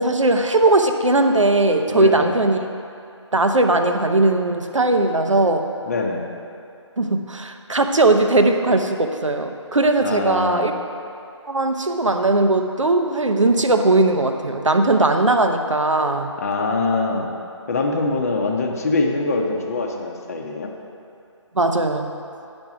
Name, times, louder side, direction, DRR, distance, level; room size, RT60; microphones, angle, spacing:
voice 1, 0.0-2.6 3.3-5.6 7.0-10.7 11.5-16.3 21.5-22.1, right 2 dB, 85° right, 6 dB, 0.8 m, -18 dB
voice 2, 1.9-2.4 5.9-6.2 10.0-10.7 16.4-17.3 17.7-20.7, left 3 dB, 30° left, 2 dB, 0.8 m, -23 dB
10.5 x 5.3 x 6.0 m, 2.6 s
figure-of-eight pair, 155°, 16 cm